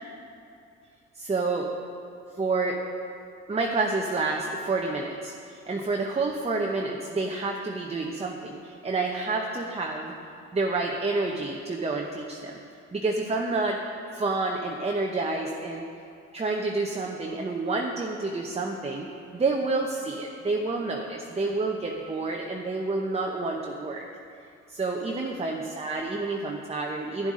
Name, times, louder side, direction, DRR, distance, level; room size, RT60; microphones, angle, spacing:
voice 1, 1.2-1.7 2.4-2.8 3.5-10.1 10.5-12.6 12.9-15.9 16.3-19.1 19.3-24.0 24.7-27.3, right 3 dB, 20° right, 1 dB, 0.8 m, -29 dB
11.5 x 10.0 x 3.7 m, 2.5 s
cardioid pair, 90°, 30 cm